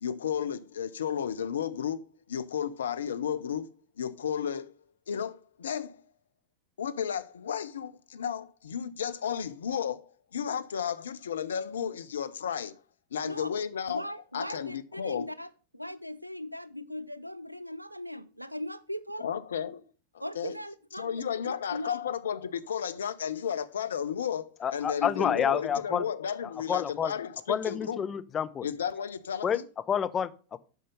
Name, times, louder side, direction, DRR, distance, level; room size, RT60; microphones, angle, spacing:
voice 1, 0.0-3.7 4.0-4.7 5.1-6.0 6.8-10.0 10.3-12.8 13.1-14.0 14.3-15.3 19.2-19.8 20.1-20.6 21.0-28.0 28.6-29.6, left 8 dB, 65° left, 0.6 m, -33 dB
voice 2, 13.9-19.3 20.2-22.0, equal, 90° right, 0.5 m, -39 dB
voice 3, 24.6-26.0 26.7-27.1 27.5-28.7 29.4-29.6 29.9-30.6, left 8 dB, 25° left, 0.6 m, -29 dB
8.3 x 5.5 x 5.4 m
figure-of-eight pair, 90°, 0 cm